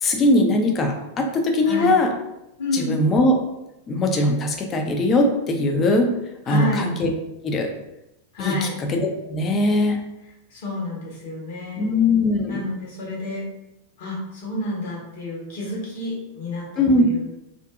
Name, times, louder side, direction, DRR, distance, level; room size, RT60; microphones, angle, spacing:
voice 1, 0.0-2.1 2.7-3.3 3.9-6.1 6.5-7.1 7.4-7.7 8.4-10.0 11.8-12.6 16.8-17.1, left 2 dB, 25° left, 3 dB, 0.4 m, -20 dB
voice 2, 1.6-2.0 2.6-2.9 6.4-6.9 8.3-8.7 10.5-11.9 12.5-13.5 14.0-17.3, left 1 dB, 55° left, -4 dB, 1.0 m, -29 dB
2.5 x 2.5 x 2.3 m, 0.88 s
figure-of-eight pair, 90°, 0 cm